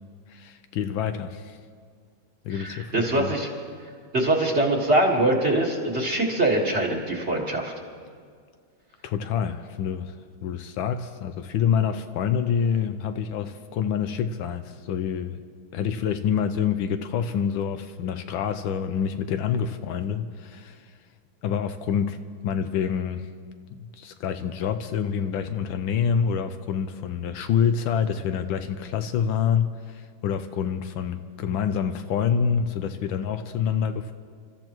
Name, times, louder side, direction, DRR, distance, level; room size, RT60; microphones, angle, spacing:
voice 1, 0.3-1.6 2.4-3.4 9.0-10.2 10.4-15.4 15.7-20.9 21.4-22.2 22.4-23.3 23.8-34.1, left 7 dB, 75° left, 9 dB, 1.4 m, -27 dB
voice 2, 2.5-3.5 4.1-7.7, right 1 dB, 35° right, -1 dB, 1.9 m, -23 dB
28.5 x 13.5 x 3.1 m, 2.1 s
omnidirectional pair, 2.3 m